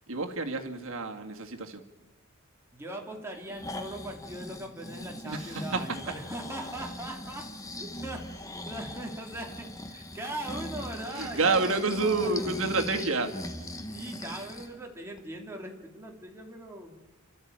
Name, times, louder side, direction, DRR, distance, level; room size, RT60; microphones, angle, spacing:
voice 1, 0.1-1.8 5.2-6.0 11.1-13.3, right 3 dB, 65° right, 4 dB, 2.1 m, -29 dB
voice 2, 2.7-12.5 13.9-17.0, right 1 dB, 10° right, 1 dB, 2.6 m, -40 dB
Breathing, 3.3-14.7 15.2-15.3, left 1 dB, 15° left, 1.2 m, -40 dB
29.0 x 13.0 x 8.9 m, 1.1 s
head